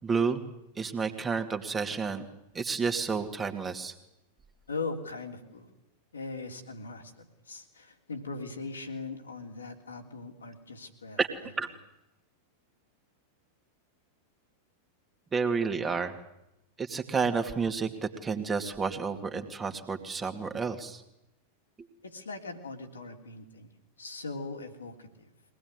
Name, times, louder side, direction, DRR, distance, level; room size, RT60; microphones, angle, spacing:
voice 1, 0.0-0.4 0.8-2.3 2.5-3.9 11.2-11.3 11.6-11.7 15.3-16.2 16.8-17.9 18.2-21.0, right 5 dB, 15° right, 6 dB, 2.5 m, -30 dB
voice 2, 4.7-5.7 6.1-11.5 22.0-23.7 24.0-25.3, left 3 dB, 75° left, 3 dB, 3.3 m, -40 dB
24.0 x 19.0 x 9.7 m, 0.87 s
figure-of-eight pair, 90°, 0 cm